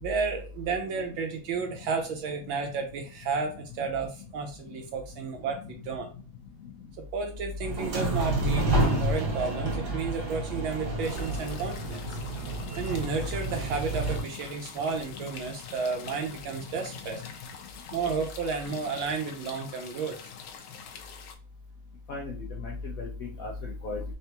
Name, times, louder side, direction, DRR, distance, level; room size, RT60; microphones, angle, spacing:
voice 1, 0.0-6.1 7.0-12.2 12.8-17.2 17.9-20.2, right 5 dB, 75° right, 4 dB, 1.3 m, -32 dB
sound 1, 7.6-14.2, right 1 dB, 55° right, 1.6 m, -29 dB
sound 2, 11.0-21.3, left 7 dB, 70° left, 1.1 m, -46 dB
voice 2, 16.6-17.2 22.1-24.0, left 3 dB, 85° left, -2 dB, 0.7 m, -37 dB
3.9 x 3.3 x 2.8 m, 0.35 s
omnidirectional pair, 2.4 m